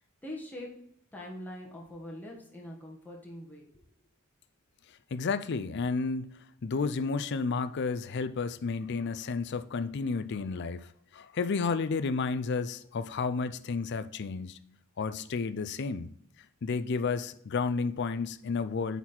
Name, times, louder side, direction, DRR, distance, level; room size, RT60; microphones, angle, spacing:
voice 1, 0.2-0.7 1.1-3.8, left 1 dB, 10° left, 1.4 m, -43 dB
voice 2, 5.1-6.3 6.6-14.6 15.0-16.1 16.6-19.0, left 4 dB, 55° left, 0.4 m, -31 dB
8.4 x 4.2 x 4.3 m
head